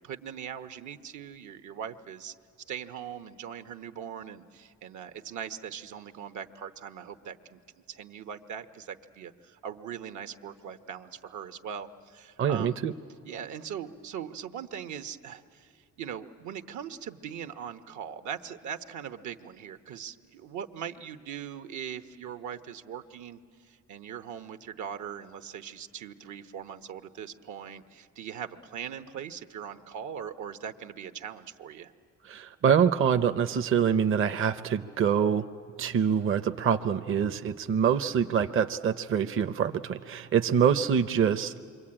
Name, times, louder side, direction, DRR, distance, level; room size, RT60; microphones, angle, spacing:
voice 1, 0.0-2.3 2.7-7.6 7.9-12.8 13.2-31.9, right 8 dB, 75° right, 9 dB, 1.1 m, -40 dB
voice 2, 12.4-12.9 32.3-35.5 35.8-41.6, right 7 dB, 45° right, 8 dB, 0.7 m, -25 dB
27.5 x 24.0 x 8.8 m, 2.3 s
cardioid pair, 90°, 30 cm